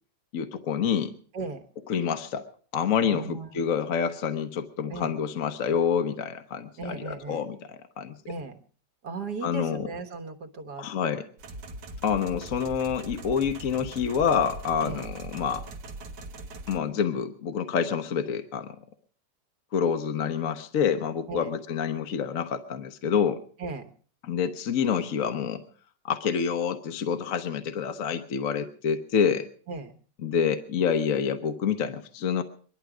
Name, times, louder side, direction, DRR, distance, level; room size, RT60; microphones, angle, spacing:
voice 1, 0.3-1.2 1.9-2.4 2.7-7.7 8.0-8.3 9.4-9.9 10.8-11.3 12.0-15.6 16.7-18.8 19.7-23.4 24.2-25.6 26.0-29.5 30.2-32.4, left 7 dB, 60° left, 7 dB, 1.2 m, -27 dB
voice 2, 3.1-3.5 4.9-5.1 6.8-7.5 8.3-8.6 9.0-11.2 14.8-15.1 21.3-21.5 23.6-23.9 29.7-29.9, right 4 dB, 70° right, 6 dB, 2.0 m, -37 dB
sound 1, 11.4-16.8, right 2 dB, 90° right, 1.7 m, -40 dB
23.0 x 12.0 x 4.9 m, 0.44 s
omnidirectional pair, 1.8 m